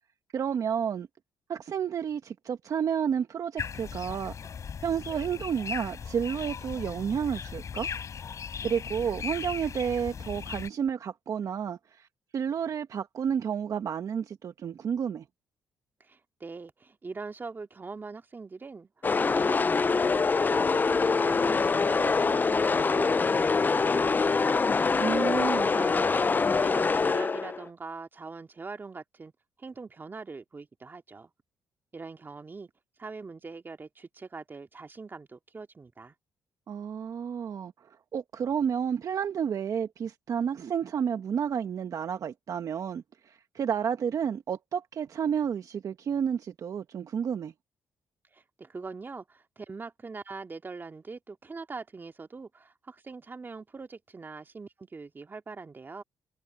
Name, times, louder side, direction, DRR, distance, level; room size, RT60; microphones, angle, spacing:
voice 1, 0.3-1.1 1.5-4.4 4.8-7.9 8.6-12.1 12.3-15.2 25.0-25.7 36.7-37.7 38.1-47.5, right 7 dB, 55° right, 1.4 m, -31 dB
sound 1, 3.6-10.7, left 7 dB, 50° left, 5.0 m, -38 dB
voice 2, 16.0-24.7 25.3-26.3 26.6-29.3 29.6-31.3 31.9-32.7 33.0-36.1 48.3-56.0, right 4 dB, 30° right, 2.5 m, -43 dB
sound 2, 19.0-27.7, left 4 dB, 30° left, 0.5 m, -24 dB
supercardioid pair, 75°, 7 cm